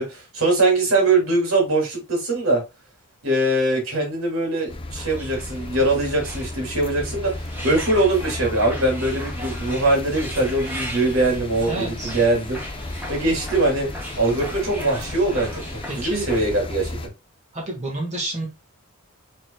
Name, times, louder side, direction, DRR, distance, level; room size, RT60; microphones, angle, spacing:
voice 1, 0.0-2.6 3.2-12.6 13.1-13.9 14.2-16.9, right 2 dB, 65° right, 1 dB, 2.5 m, -22 dB
sound 1, 4.7-17.1, left 1 dB, 25° left, 0.6 m, -34 dB
sound 2, 4.9-16.4, equal, 10° right, 1.6 m, -38 dB
voice 2, 11.7-12.1 15.9-16.3 17.5-18.5, right 2 dB, 35° right, 0 dB, 1.5 m, -29 dB
6.3 x 3.7 x 2.2 m, 0.24 s
head